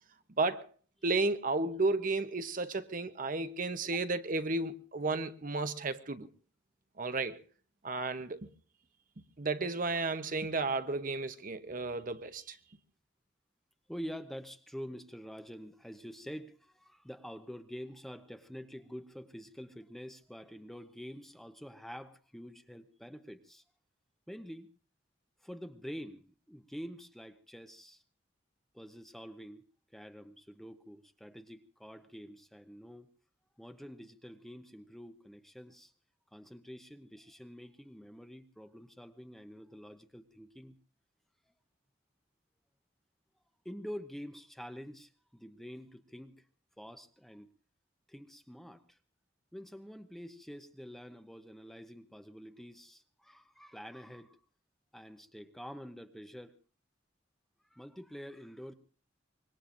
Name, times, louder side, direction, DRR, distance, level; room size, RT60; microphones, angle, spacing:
voice 1, 0.4-0.7 1.0-6.3 7.0-7.4 7.8-8.5 9.4-12.6, right 3 dB, 45° right, 0.8 m, -33 dB
voice 2, 13.9-23.6 24.3-24.7 25.4-28.0 28.7-29.7 29.9-33.1 33.6-35.9 36.3-40.7 43.6-46.5 46.8-47.5 48.1-49.0 49.5-54.4 54.9-56.6 57.7-58.7, equal, ahead, 0.8 m, -47 dB
25.0 x 22.0 x 2.6 m
head